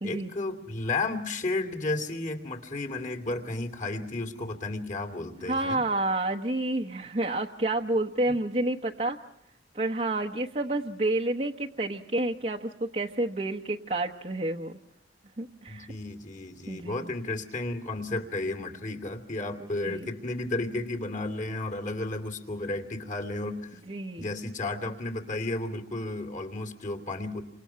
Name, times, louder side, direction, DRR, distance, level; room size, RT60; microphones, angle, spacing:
voice 1, 0.0-5.8 15.7-23.8 24.2-27.4, left 2 dB, 45° left, 7 dB, 2.6 m, -33 dB
voice 2, 5.4-9.2 9.7-14.8 15.4-15.9 16.7-17.1 19.6-20.1 23.9-24.3, right 2 dB, 40° right, 1 dB, 1.1 m, -29 dB
29.5 x 27.0 x 5.7 m, 0.78 s
head